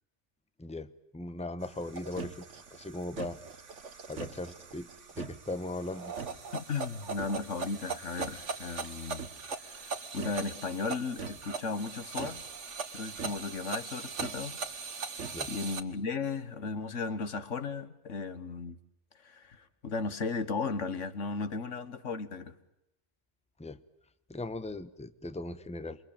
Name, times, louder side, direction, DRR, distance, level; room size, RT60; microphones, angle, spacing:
voice 1, 0.6-2.3 2.7-3.4 4.1-4.9 5.2-6.1 15.3-15.5 23.6-23.8 24.3-26.0, left 2 dB, 5° left, 12 dB, 1.0 m, -38 dB
sound 1, 1.6-15.8, right 5 dB, 75° right, 1.9 m, -40 dB
voice 2, 6.5-9.3 9.6-12.4 12.9-14.6 15.5-18.8 19.2-22.6, left 4 dB, 80° left, 12 dB, 1.8 m, -35 dB
28.5 x 23.5 x 8.8 m, 0.84 s
omnidirectional pair, 1.3 m